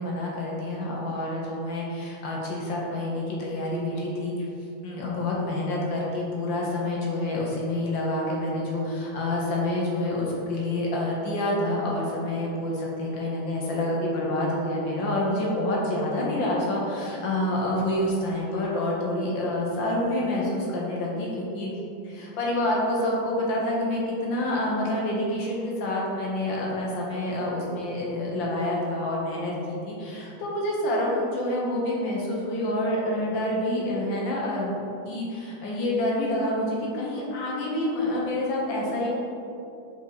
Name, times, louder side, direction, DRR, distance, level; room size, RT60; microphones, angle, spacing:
voice 1, 0.0-4.3 4.8-21.7 22.0-39.1, left 1 dB, 75° left, -3 dB, 1.8 m, -27 dB
5.3 x 5.2 x 4.0 m, 2.8 s
omnidirectional pair, 2.1 m